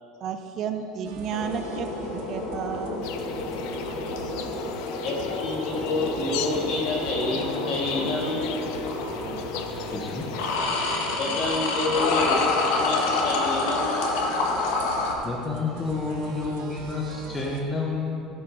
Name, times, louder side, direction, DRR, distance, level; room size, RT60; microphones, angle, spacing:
voice 1, 0.2-3.1 4.4-4.5 4.9-5.0, right 7 dB, 35° right, 7 dB, 0.5 m, -33 dB
sound 1, 1.0-17.6, right 5 dB, 75° right, 1.1 m, -42 dB
sound 2, 1.3-15.1, left 3 dB, 85° left, 1.5 m, -28 dB
sound 3, 3.0-10.6, left 8 dB, 65° left, 0.6 m, -38 dB
voice 2, 5.0-8.6 9.8-9.9 11.1-14.1, left 2 dB, 45° left, -2 dB, 2.1 m, -29 dB
voice 3, 9.7-10.3 11.9-12.1 15.2-18.3, left 3 dB, 10° left, -3 dB, 0.8 m, -30 dB
15.0 x 6.2 x 4.8 m, 2.7 s
cardioid pair, 175°, 0 cm